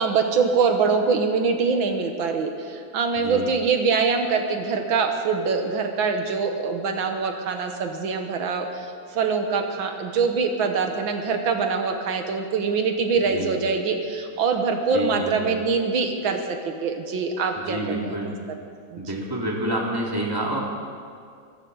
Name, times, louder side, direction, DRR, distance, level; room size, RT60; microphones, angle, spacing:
voice 1, 0.0-18.3 18.9-19.0, right 5 dB, 85° right, 5 dB, 2.0 m, -24 dB
voice 2, 3.2-3.5 13.3-13.6 14.9-15.6 17.7-18.3 19.0-20.6, right 1 dB, 10° right, -2 dB, 2.3 m, -28 dB
24.5 x 14.5 x 4.0 m, 2.2 s
omnidirectional pair, 2.1 m